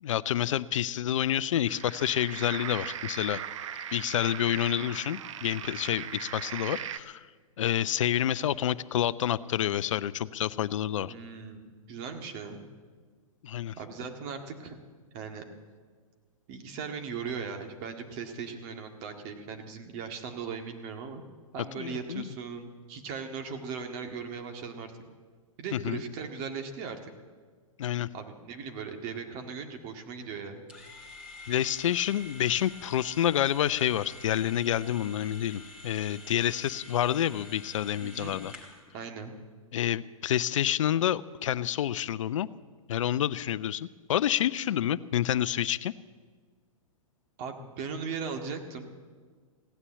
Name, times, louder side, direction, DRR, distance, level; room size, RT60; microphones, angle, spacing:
voice 1, 0.0-3.4 3.9-7.2 7.6-11.1 13.4-13.7 21.8-22.3 25.7-26.0 27.8-28.1 31.5-38.5 39.7-42.5 42.9-45.9, left 11 dB, 60° left, 17 dB, 0.6 m, -28 dB
sound 1, 1.6-7.0, right 9 dB, 60° right, 0.8 m, -39 dB
voice 2, 11.1-12.6 13.8-14.8 15.1-15.5 16.5-21.2 21.5-24.9 25.6-27.1 28.1-30.7 38.0-38.4 38.9-39.3 47.4-48.9, right 5 dB, 40° right, 5 dB, 1.9 m, -38 dB
sound 2, 30.7-38.9, left 2 dB, 5° right, 2.5 m, -48 dB
16.0 x 9.8 x 8.6 m, 1.5 s
hypercardioid pair, 120°, 18 cm